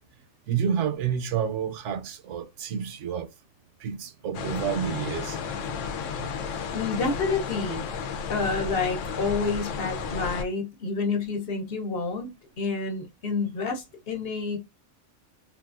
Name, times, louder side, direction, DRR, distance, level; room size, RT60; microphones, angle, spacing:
voice 1, 0.5-3.3 3.8-5.4 6.2-6.3, right 8 dB, 75° right, 0.9 m, -29 dB
sound 1, 4.3-10.4, left 6 dB, 80° left, 1.0 m, -33 dB
voice 2, 6.7-7.8 8.3-12.3 12.6-14.6, left 4 dB, 55° left, 1.0 m, -29 dB
3.7 x 2.4 x 2.4 m
omnidirectional pair, 1.3 m